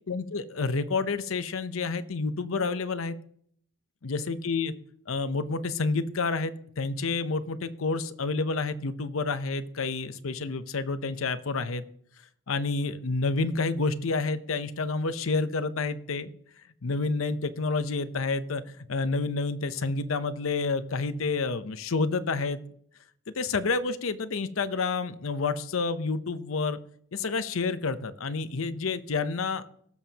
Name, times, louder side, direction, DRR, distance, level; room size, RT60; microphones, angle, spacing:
voice 1, 0.1-3.2 4.0-4.7 5.1-11.8 12.5-16.3 16.8-18.6 18.9-22.6 23.4-26.8 27.1-29.6, left 4 dB, 80° left, 12 dB, 0.7 m, -29 dB
18.5 x 7.2 x 2.9 m, 0.63 s
head